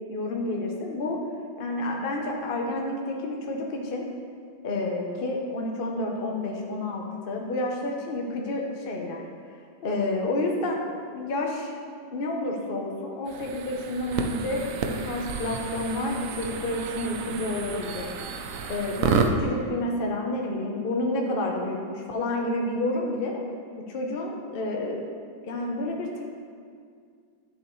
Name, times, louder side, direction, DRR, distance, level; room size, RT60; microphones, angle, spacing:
voice 1, 0.1-1.2 1.6-4.0 4.6-9.2 9.8-10.8 11.1-11.7 12.1-18.1 18.7-23.4 23.9-25.0 25.5-26.2, left 2 dB, 55° left, 0 dB, 0.6 m, -29 dB
sound 1, 13.3-19.3, right 6 dB, 75° right, 0.7 m, -31 dB
10.5 x 6.8 x 3.1 m, 2.1 s
omnidirectional pair, 2.0 m